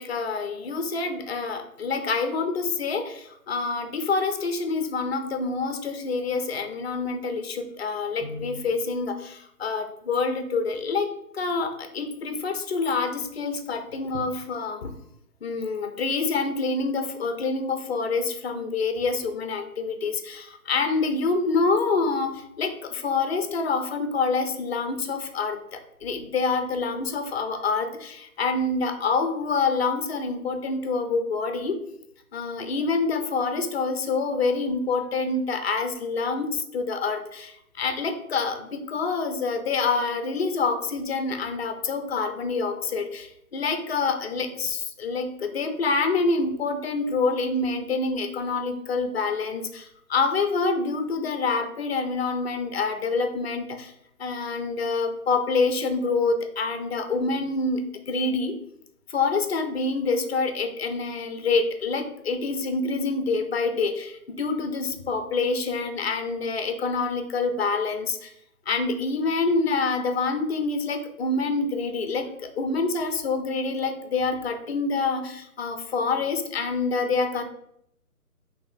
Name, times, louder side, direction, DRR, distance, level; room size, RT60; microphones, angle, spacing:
voice 1, 0.0-14.9 15.4-31.8 32.3-53.9 54.2-58.6 59.1-68.3 68.7-77.4, left 4 dB, 45° left, 7 dB, 0.5 m, -27 dB
3.0 x 2.8 x 3.7 m, 0.74 s
figure-of-eight pair, 155°, 44 cm